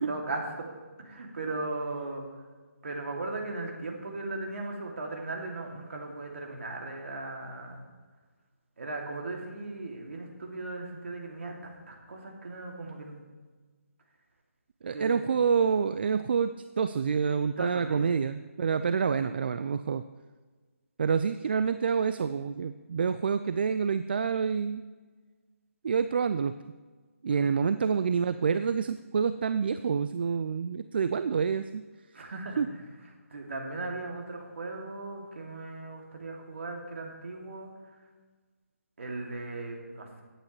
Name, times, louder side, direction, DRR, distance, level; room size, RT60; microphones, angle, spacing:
voice 1, 0.1-2.2 2.8-7.8 8.8-13.2 14.9-15.1 17.6-18.0 27.3-27.5 32.1-32.6 33.3-37.7 39.0-40.2, right 2 dB, 60° right, 0 dB, 2.6 m, -37 dB
voice 2, 14.8-20.0 21.0-24.8 25.8-26.5 27.2-31.8 32.6-32.7, right 6 dB, 45° right, 11 dB, 0.3 m, -27 dB
16.5 x 9.0 x 3.2 m, 1.4 s
figure-of-eight pair, 160°, 8 cm